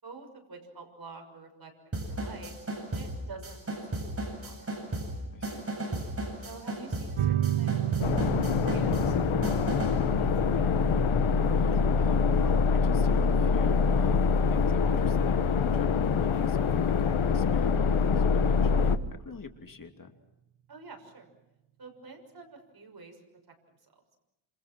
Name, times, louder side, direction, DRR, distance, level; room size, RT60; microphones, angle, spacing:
voice 1, 0.0-4.7 6.4-9.9 10.2-10.8 20.7-21.3 21.8-23.2 23.5-23.6, right 4 dB, 50° right, 3 dB, 6.4 m, -48 dB
sound 1, 1.9-10.1, right 1 dB, 25° right, 8.0 m, -36 dB
voice 2, 5.3-5.7 11.5-20.1, left 4 dB, 40° left, 5 dB, 2.8 m, -44 dB
sound 2, 7.2-18.2, right 11 dB, 85° right, 1.3 m, -35 dB
sound 3, 8.0-19.0, left 5 dB, 75° left, 1.3 m, -25 dB
28.0 x 28.0 x 6.1 m, 0.92 s
wide cardioid pair, 105°, 49 cm